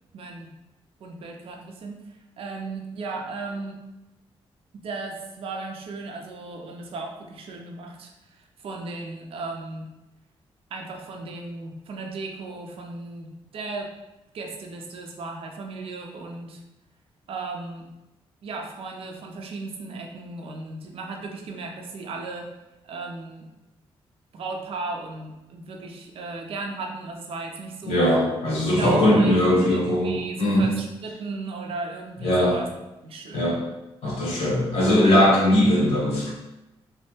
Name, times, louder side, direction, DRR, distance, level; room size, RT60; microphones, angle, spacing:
voice 1, 0.1-0.5 1.0-3.8 4.8-9.9 10.7-13.9 14.3-16.6 17.3-17.9 18.4-22.5 22.8-23.5 24.3-28.1 28.7-32.7 33.0-33.5, right 3 dB, 65° right, 2 dB, 0.5 m, -36 dB
voice 2, 27.8-30.7 32.2-32.6 33.3-33.6 34.0-36.3, left 1 dB, 75° left, -4 dB, 1.1 m, -20 dB
3.1 x 2.1 x 3.0 m, 0.96 s
cardioid pair, 120°, 10 cm